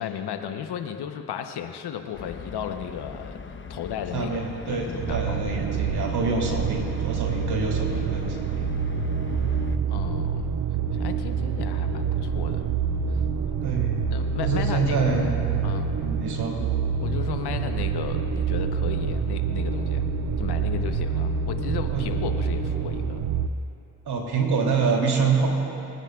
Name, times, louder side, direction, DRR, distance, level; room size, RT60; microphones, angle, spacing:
voice 1, 0.0-5.6 9.9-10.5 10.9-12.7 14.1-15.2 15.6-15.9 17.0-20.0 20.4-23.2, left 9 dB, 60° left, 7 dB, 1.0 m, -34 dB
sound 1, 2.1-9.8, left 5 dB, 25° left, 0.9 m, -40 dB
voice 2, 4.1-8.7 13.6-14.0 14.4-15.4 16.0-16.6 21.9-22.1 24.0-25.5, right 4 dB, 60° right, -1 dB, 3.0 m, -26 dB
sound 2, 5.0-23.5, right 6 dB, 45° right, 0.7 m, -27 dB
27.0 x 9.9 x 2.4 m, 2.9 s
hypercardioid pair, 50°, 43 cm